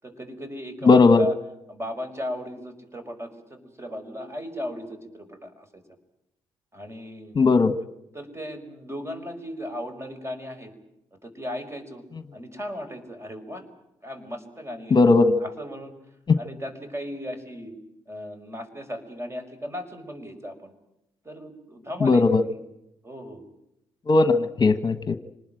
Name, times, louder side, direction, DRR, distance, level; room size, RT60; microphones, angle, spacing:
voice 1, 0.0-1.4 1.7-5.8 6.7-7.5 8.1-10.7 11.2-12.0 12.3-13.7 14.0-15.1 15.4-15.9 16.4-17.7 18.1-20.7 21.2-22.6 23.0-23.4, left 1 dB, 25° right, 8 dB, 5.6 m, -36 dB
voice 2, 0.8-1.2 7.4-7.7 14.9-15.3 22.0-22.4 24.1-25.2, left 3 dB, 40° left, 11 dB, 1.3 m, -17 dB
26.5 x 20.0 x 9.1 m, 0.85 s
hypercardioid pair, 50°, 11 cm